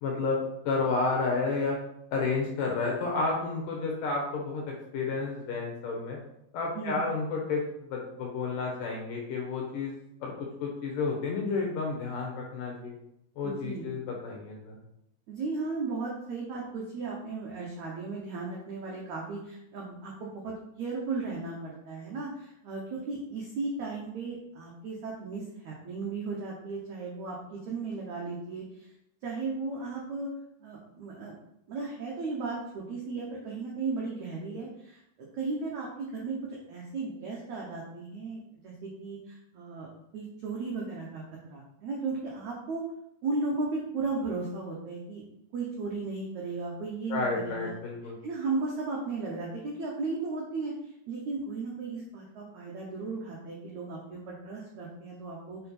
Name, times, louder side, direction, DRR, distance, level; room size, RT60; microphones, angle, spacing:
voice 1, 0.0-1.8 2.1-6.2 6.5-9.9 10.2-10.3 10.6-13.0 13.4-14.7 47.1-48.1, left 4 dB, 65° left, -1 dB, 2.3 m, -31 dB
voice 2, 13.4-13.8 15.3-28.9 29.2-30.3 30.6-31.4 31.7-41.2 41.5-42.8 43.2-45.2 45.5-47.7 48.2-55.6, right 3 dB, 80° right, -3 dB, 1.6 m, -35 dB
5.9 x 4.5 x 4.2 m, 0.78 s
omnidirectional pair, 4.8 m